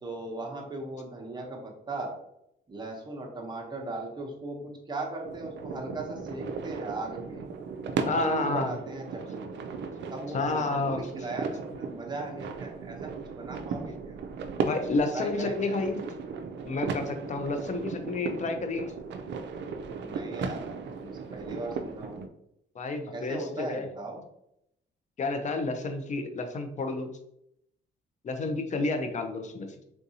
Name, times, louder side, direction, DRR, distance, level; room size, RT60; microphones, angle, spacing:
voice 1, 0.0-2.1 2.7-7.4 8.2-9.5 10.1-14.2 15.1-15.8 20.0-22.2 23.1-24.2, right 2 dB, 20° right, 0 dB, 0.9 m, -38 dB
sound 1, 5.2-22.3, right 5 dB, 65° right, 0.4 m, -36 dB
voice 2, 8.0-8.7 10.3-11.0 14.6-16.0 16.7-18.9 22.8-23.9 25.2-27.1 28.2-29.7, left 3 dB, 40° left, 7 dB, 0.6 m, -30 dB
3.6 x 2.6 x 2.8 m, 0.78 s
cardioid pair, 90°, 20 cm